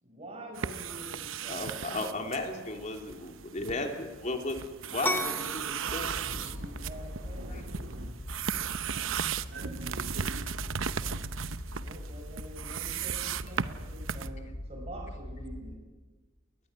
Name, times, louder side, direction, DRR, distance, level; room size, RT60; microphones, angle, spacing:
voice 1, 0.0-1.8 5.3-7.6 11.7-15.8, right 1 dB, 30° right, 0 dB, 5.4 m, -46 dB
sound 1, 0.5-14.3, right 7 dB, 90° right, 0.9 m, -36 dB
voice 2, 1.5-4.6 4.9-6.5 7.5-7.6, left 2 dB, 40° left, 4 dB, 3.2 m, -35 dB
sound 2, 5.0-12.4, left 2 dB, 10° left, 1.1 m, -40 dB
sound 3, 5.9-15.8, left 1 dB, 60° left, 2.4 m, -42 dB
voice 3, 6.0-6.9 7.2-8.1 9.5-10.4, right 2 dB, 70° right, 1 dB, 3.2 m, -44 dB
21.0 x 20.0 x 9.7 m, 1.2 s
head